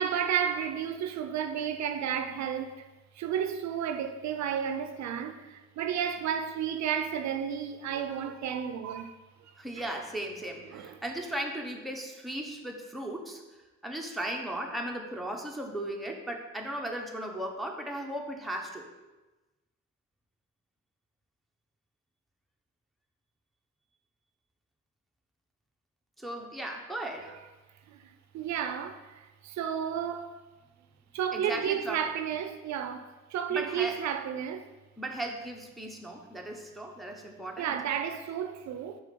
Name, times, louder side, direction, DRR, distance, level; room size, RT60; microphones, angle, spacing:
voice 1, 0.0-2.8 3.2-9.2 9.8-9.9 10.7-10.9 27.9-30.3 31.1-34.7 37.6-39.0, right 8 dB, 65° right, 0.5 m, -32 dB
voice 2, 9.6-13.4 13.8-18.9 26.2-27.4 31.3-32.1 33.5-34.0 35.0-37.8, right 1 dB, ahead, 0.8 m, -36 dB
4.8 x 3.8 x 5.2 m
cardioid pair, 90°, 30 cm